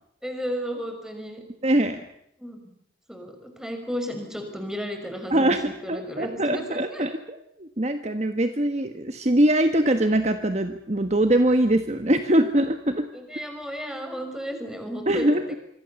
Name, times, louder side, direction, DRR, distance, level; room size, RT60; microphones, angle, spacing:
voice 1, 0.2-1.5 2.4-2.6 3.1-7.0 13.1-15.3, equal, 5° right, 5 dB, 5.6 m, -33 dB
voice 2, 1.6-2.0 5.3-13.1 15.1-15.5, right 1 dB, 40° right, 7 dB, 1.4 m, -22 dB
26.5 x 24.5 x 7.1 m, 0.75 s
head